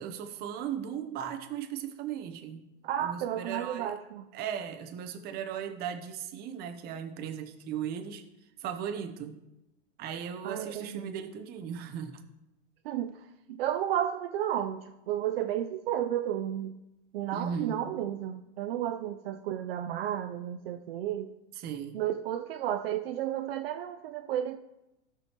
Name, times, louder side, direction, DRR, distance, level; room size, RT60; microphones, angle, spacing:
voice 1, 0.0-2.7 3.0-3.9 4.3-8.2 8.6-9.4 10.0-12.2 17.3-17.9 21.6-22.0, right 8 dB, 25° right, 7 dB, 0.8 m, -37 dB
voice 2, 2.8-4.3 10.4-11.1 12.8-16.8 17.1-21.3 21.9-24.6, right 11 dB, 55° right, 7 dB, 0.6 m, -32 dB
16.5 x 6.2 x 3.0 m, 0.93 s
hypercardioid pair, 145°, 35 cm